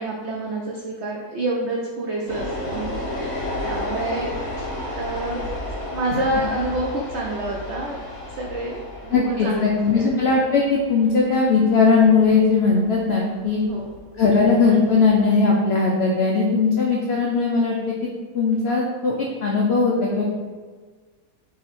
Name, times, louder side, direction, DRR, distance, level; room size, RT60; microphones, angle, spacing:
voice 1, 0.0-4.6 4.9-5.4 5.8-8.1 8.3-10.1 13.7-13.9, right 1 dB, 85° right, -2 dB, 0.6 m, -28 dB
sound 1, 2.3-15.3, left 1 dB, 40° left, 1.6 m, -33 dB
voice 2, 9.1-13.6 14.2-18.1 18.3-20.3, left 4 dB, 80° left, -2 dB, 0.5 m, -19 dB
3.9 x 2.8 x 4.1 m, 1.4 s
omnidirectional pair, 1.8 m